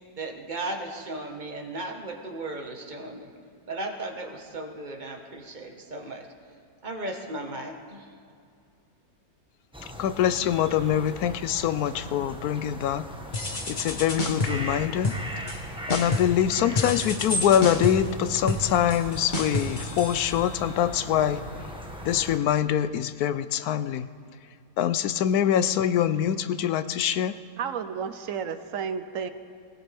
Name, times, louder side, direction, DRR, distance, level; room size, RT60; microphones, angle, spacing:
voice 1, 0.2-3.3 3.7-6.3 6.8-8.1, right 2 dB, 30° right, 2 dB, 1.4 m, -36 dB
sound 1, 9.7-22.4, equal, 5° right, 1.0 m, -38 dB
voice 2, 10.0-13.1 13.7-15.1 15.4-15.6 15.9-21.5 22.0-24.1 24.8-27.3, left 10 dB, 80° left, 13 dB, 1.1 m, -24 dB
sound 2, 13.3-14.7 15.0-15.6 15.9-16.4 16.8-20.8, left 2 dB, 35° left, 1.3 m, -30 dB
voice 3, 27.6-29.3, right 7 dB, 65° right, 10 dB, 1.0 m, -32 dB
24.5 x 16.5 x 3.5 m, 2.3 s
omnidirectional pair, 1.6 m